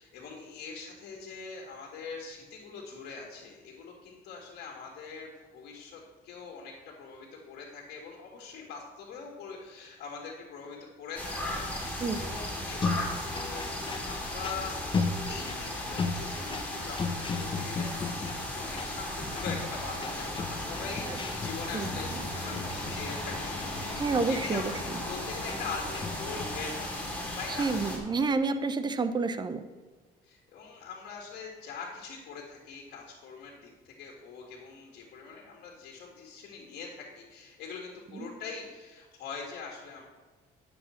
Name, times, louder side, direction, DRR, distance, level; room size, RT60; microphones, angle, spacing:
voice 1, 0.0-13.7 14.0-14.8 15.3-27.7 30.2-40.0, left 5 dB, 70° left, -1 dB, 1.8 m, -43 dB
sound 1, 11.2-28.0, left 1 dB, 10° left, 2.7 m, -36 dB
sound 2, 12.5-26.5, left 4 dB, 30° left, 0.7 m, -37 dB
voice 2, 24.0-25.0 27.5-29.7 38.1-38.3, right 4 dB, 25° right, 11 dB, 0.6 m, -29 dB
9.9 x 7.0 x 4.3 m, 1.4 s
cardioid pair, 110°, 17 cm